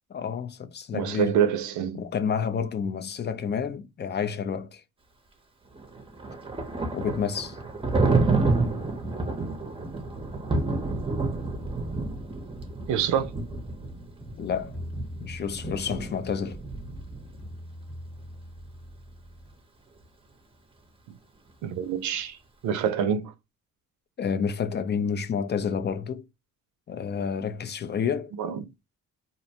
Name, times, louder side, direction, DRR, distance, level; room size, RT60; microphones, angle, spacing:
voice 1, 0.1-1.4 1.9-4.8 6.9-7.6 14.4-14.8 15.2-16.6 24.2-26.3 26.9-28.3, left 6 dB, 35° left, 0.4 m, -29 dB
voice 2, 0.9-2.0 12.9-13.3 21.6-22.4 22.6-23.3 28.4-28.6, right 8 dB, 75° right, 0.5 m, -26 dB
Thunder, 5.8-17.5, right 3 dB, 20° right, 0.7 m, -29 dB
sound 1, 14.2-19.5, equal, 5° left, 0.9 m, -44 dB
2.5 x 2.1 x 2.7 m
cardioid pair, 90°, 30 cm